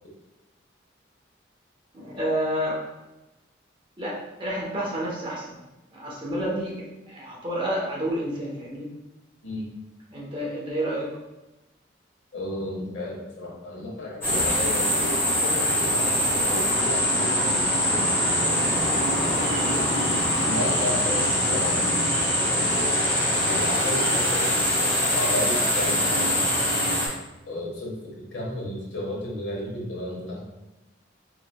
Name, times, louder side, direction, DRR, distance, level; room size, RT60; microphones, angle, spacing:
voice 1, 1.9-2.8 4.0-5.5 5.9-8.9 10.1-11.1 21.0-21.2, equal, 25° right, -5 dB, 0.9 m, -30 dB
voice 2, 12.3-18.0 18.4-18.6 20.4-21.9 23.5-26.4 27.4-28.0 28.3-30.4, left 1 dB, 80° left, -4 dB, 1.2 m, -33 dB
sound 1, 14.2-27.1, equal, 15° left, 1.1 m, -23 dB
4.6 x 3.1 x 2.2 m, 1.0 s
head